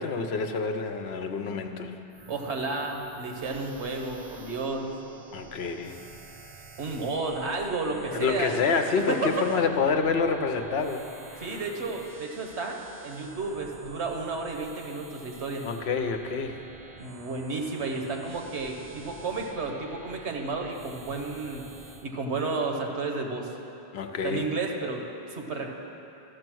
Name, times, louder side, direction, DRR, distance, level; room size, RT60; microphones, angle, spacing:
voice 1, 0.0-2.0 5.3-6.0 8.1-11.0 11.3-11.6 15.6-16.7 23.9-24.5, left 5 dB, 75° left, 6 dB, 0.9 m, -28 dB
sound 1, 2.1-22.1, right 3 dB, 45° right, 0.7 m, -48 dB
voice 2, 2.3-4.9 6.8-8.6 9.0-9.3 11.4-15.7 17.0-21.6 22.0-23.5 24.2-25.7, right 3 dB, 90° right, 2 dB, 1.4 m, -32 dB
13.5 x 6.5 x 6.1 m, 2.9 s
omnidirectional pair, 1.1 m